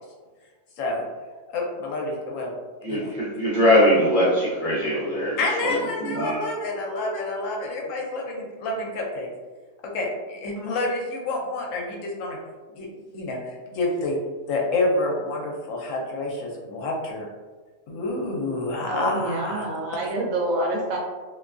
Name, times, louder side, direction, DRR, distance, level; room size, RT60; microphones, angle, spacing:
voice 1, 1.5-2.5 2.9-3.1 5.4-9.3 9.8-12.4 12.7-12.9 13.1-14.2 14.5-17.3 17.9-19.7, left 2 dB, 75° left, -1 dB, 0.9 m, -28 dB
voice 2, 2.8-6.4, equal, 45° left, -7 dB, 0.8 m, -22 dB
voice 3, 18.9-21.0, right 1 dB, 75° right, -1 dB, 1.0 m, -27 dB
2.6 x 2.2 x 2.4 m, 1.4 s
omnidirectional pair, 1.4 m